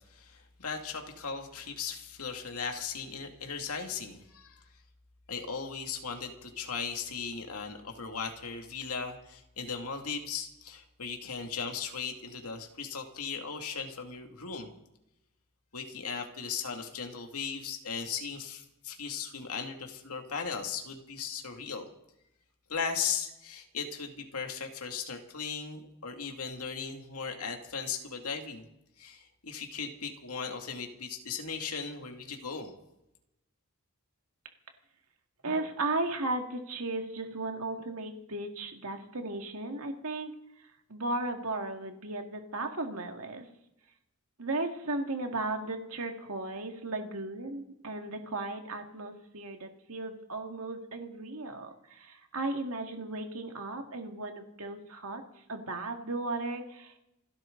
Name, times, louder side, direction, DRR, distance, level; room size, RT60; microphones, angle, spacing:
voice 1, 0.1-4.6 5.3-14.7 15.7-21.9 22.7-28.7 29.0-32.7, left 6 dB, 80° left, 3 dB, 2.3 m, -37 dB
voice 2, 35.4-40.3 40.9-43.5 44.4-55.2 55.5-57.0, right 2 dB, 75° right, 4 dB, 2.1 m, -35 dB
28.0 x 12.5 x 3.9 m, 0.85 s
head